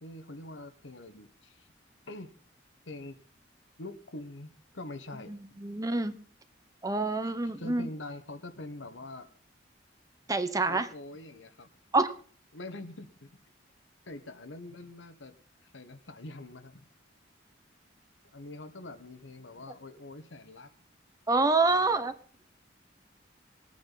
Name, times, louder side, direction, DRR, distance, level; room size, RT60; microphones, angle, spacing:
voice 1, 0.0-1.7 2.1-2.3 2.8-3.2 3.8-5.4 7.2-9.3 10.7-11.7 12.5-13.3 14.1-15.3 15.7-16.8 18.3-20.7 21.4-22.1, left 2 dB, 85° left, 9 dB, 1.4 m, -44 dB
voice 2, 5.3-6.1 6.8-7.9 10.3-10.9 11.9-12.1 21.3-22.1, right 3 dB, 20° right, 10 dB, 0.9 m, -27 dB
20.5 x 8.7 x 4.1 m, 0.44 s
head